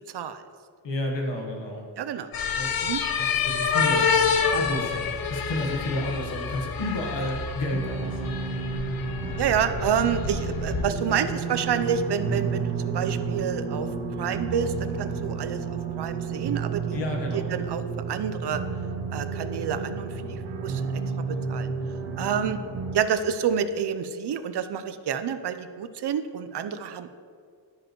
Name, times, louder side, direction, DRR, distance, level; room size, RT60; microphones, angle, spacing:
voice 1, 0.8-1.8 2.5-2.7 3.2-4.1 4.5-8.3 16.9-17.6 20.1-20.4, left 1 dB, 80° left, 0 dB, 1.3 m, -31 dB
voice 2, 2.0-2.3 2.8-3.0 9.3-13.9 14.2-17.0 17.3-17.8 18.1-18.6 19.1-21.7 22.2-22.6 22.9-27.1, right 8 dB, 65° right, 10 dB, 0.6 m, -28 dB
sound 1, 2.3-10.8, left 6 dB, 55° left, 0.6 m, -28 dB
sound 2, 7.7-23.0, right 5 dB, 90° right, 0.9 m, -31 dB
12.0 x 5.1 x 3.0 m, 2.1 s
wide cardioid pair, 95°, 43 cm